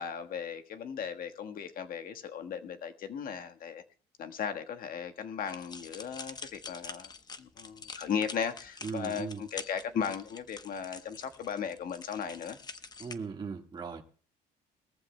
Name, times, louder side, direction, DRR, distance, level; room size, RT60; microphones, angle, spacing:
voice 1, 0.0-3.8 4.2-7.1 7.4-12.6, left 7 dB, 60° left, 1.4 m, -36 dB
sound 1, 5.4-13.1, left 4 dB, 25° left, 0.9 m, -46 dB
voice 2, 8.8-9.4 13.0-14.0, right 5 dB, 25° right, 1.7 m, -38 dB
21.5 x 14.5 x 2.2 m
cardioid pair, 110°, 17 cm